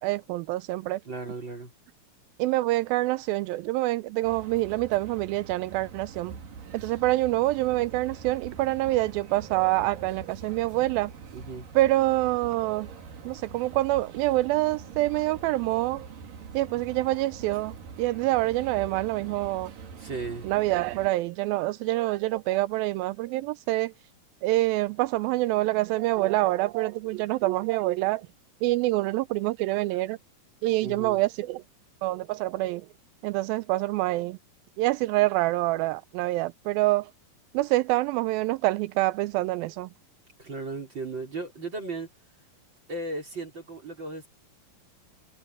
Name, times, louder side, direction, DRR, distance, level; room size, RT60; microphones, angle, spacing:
voice 1, 0.0-1.0 2.4-6.4 6.7-11.1 11.8-12.9 13.3-16.1 16.5-19.7 20.4-23.9 24.4-28.3 28.6-30.2 30.6-31.6 32.0-32.9 33.2-34.4 34.8-37.1 37.5-39.9, right 18 dB, 85° right, 2.4 m, -26 dB
voice 2, 1.0-1.7 11.3-11.7 19.9-20.5 30.8-31.2 40.4-42.1 42.9-44.3, right 3 dB, 30° right, 4.7 m, -36 dB
sound 1, 4.2-21.1, right 5 dB, 70° right, 4.2 m, -44 dB
omnidirectional pair, 4.1 m